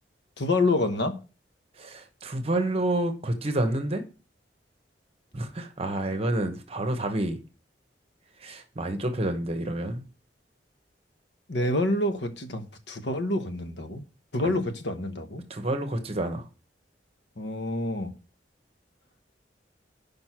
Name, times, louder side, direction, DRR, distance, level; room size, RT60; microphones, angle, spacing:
voice 1, 0.4-1.2 11.5-14.0 14.3-15.4 17.4-18.1, left 2 dB, 70° left, 1.1 m, -27 dB
voice 2, 1.8-4.0 5.3-7.4 8.4-10.0 14.4-14.5 15.5-16.4, right 1 dB, 35° right, 1.0 m, -29 dB
6.3 x 5.3 x 5.9 m
head